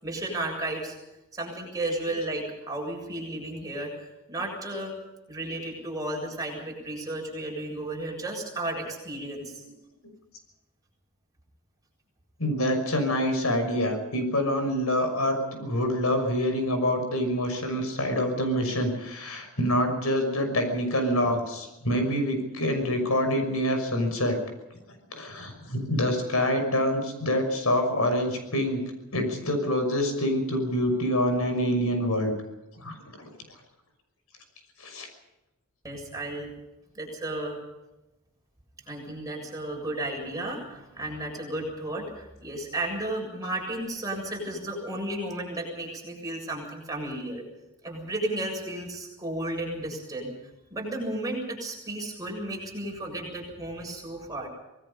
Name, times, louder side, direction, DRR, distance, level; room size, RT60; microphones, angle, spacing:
voice 1, 0.0-0.9 1.3-3.9 4.3-4.9 5.3-9.6 35.8-36.5 36.9-37.6 38.9-47.4 47.8-50.3 50.7-54.5, right 1 dB, 15° right, -1 dB, 7.5 m, -33 dB
voice 2, 12.4-24.4 25.1-28.8 29.1-32.3 32.8-32.9 34.8-35.1, equal, 75° left, 6 dB, 6.1 m, -26 dB
26.5 x 19.5 x 5.6 m, 0.98 s
head